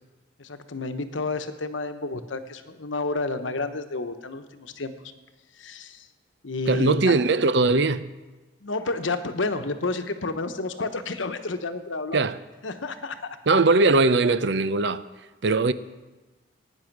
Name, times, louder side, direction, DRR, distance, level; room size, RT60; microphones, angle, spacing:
voice 1, 0.4-4.9 5.6-6.1 6.4-7.1 8.6-12.2 12.6-13.4, left 3 dB, 80° left, 1.1 m, -30 dB
voice 2, 6.7-8.1 12.1-12.4 13.5-15.1 15.4-15.7, right 3 dB, 65° right, 0.6 m, -20 dB
17.5 x 9.7 x 6.1 m
head